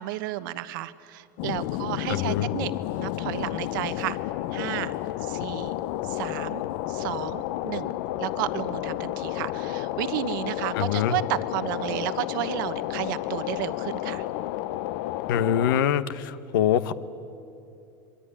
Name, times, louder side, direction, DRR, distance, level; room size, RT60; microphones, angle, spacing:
voice 1, 0.0-2.7 3.0-4.2 4.5-4.9 5.2-5.7 6.0-6.6 6.9-14.2, right 14 dB, 80° right, 13 dB, 1.2 m, -32 dB
sound 1, 1.4-15.8, left 14 dB, 65° left, 0.7 m, -31 dB
voice 2, 2.1-2.5 10.7-11.2 15.3-16.9, left 10 dB, 85° left, 14 dB, 1.1 m, -24 dB
26.0 x 23.0 x 9.8 m, 2.7 s
supercardioid pair, 130°, 11 cm